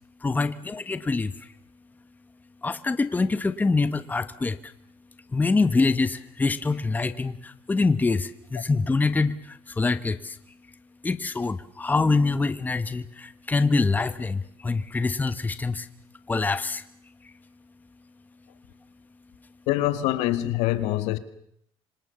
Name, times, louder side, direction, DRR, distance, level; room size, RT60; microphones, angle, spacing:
voice 1, 0.2-1.5 2.6-4.7 5.3-10.4 11.0-15.9 16.3-16.8, left 3 dB, 15° left, 1.3 m, -25 dB
voice 2, 19.7-21.2, left 15 dB, 85° left, 1.9 m, -25 dB
26.5 x 25.5 x 7.0 m
cardioid pair, 110°, 10 cm